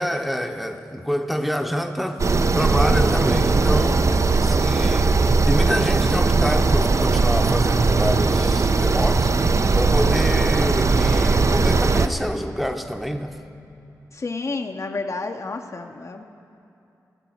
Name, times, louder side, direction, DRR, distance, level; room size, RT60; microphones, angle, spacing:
voice 1, 0.0-13.3, equal, ahead, 5 dB, 0.8 m, -27 dB
sound 1, 2.2-12.1, right 3 dB, 45° right, 0.5 m, -19 dB
voice 2, 14.1-16.2, left 3 dB, 45° left, 5 dB, 0.7 m, -30 dB
16.0 x 6.1 x 7.1 m, 2.7 s
cardioid pair, 45°, 7 cm